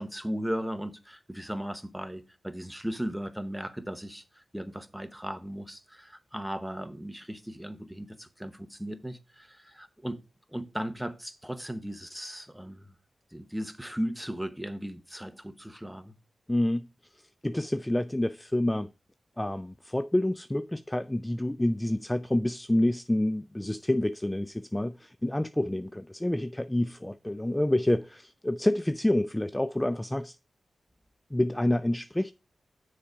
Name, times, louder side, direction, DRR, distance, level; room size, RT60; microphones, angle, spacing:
voice 1, 0.0-10.2 10.5-12.9 13.3-16.1, equal, 5° right, 1.0 m, -37 dB
voice 2, 16.5-16.9 17.4-18.9 19.4-30.4 31.3-32.3, left 1 dB, 15° left, 0.3 m, -28 dB
6.9 x 4.8 x 5.1 m
cardioid pair, 55°, 0 cm